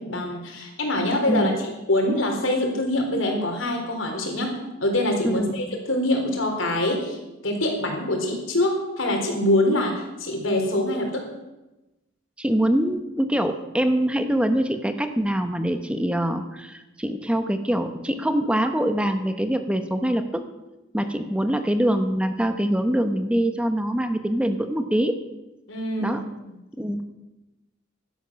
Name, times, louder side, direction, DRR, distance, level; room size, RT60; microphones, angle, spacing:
voice 1, 0.0-4.5 4.8-7.2 7.4-11.2 25.7-26.2, left 1 dB, 80° left, 3 dB, 3.9 m, -24 dB
voice 2, 5.2-5.6 12.4-20.4 20.9-25.2 26.0-26.2 26.8-27.0, right 1 dB, 5° right, 7 dB, 0.9 m, -24 dB
16.0 x 12.5 x 6.3 m, 1.0 s
head